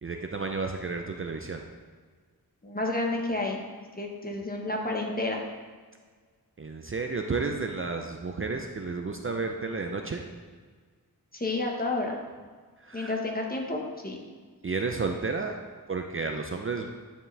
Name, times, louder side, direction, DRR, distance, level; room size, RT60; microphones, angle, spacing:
voice 1, 0.0-1.6 6.6-10.2 12.8-13.2 14.6-15.6 15.9-16.9, right 4 dB, 35° right, 3 dB, 0.5 m, -32 dB
voice 2, 2.6-3.6 4.0-5.4 11.3-12.2 12.9-14.2, left 2 dB, 25° left, 0 dB, 1.2 m, -30 dB
9.5 x 5.1 x 3.3 m, 1.5 s
wide cardioid pair, 65°, 37 cm